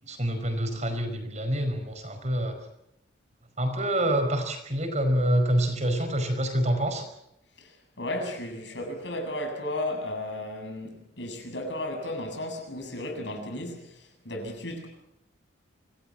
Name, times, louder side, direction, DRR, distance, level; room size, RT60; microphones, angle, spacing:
voice 1, 0.0-2.6 3.6-7.1, right 1 dB, 40° right, 5.1 m, -26 dB
voice 2, 8.0-13.8 14.2-14.9, left 1 dB, 70° left, 7.7 m, -34 dB
26.5 x 18.5 x 7.4 m
head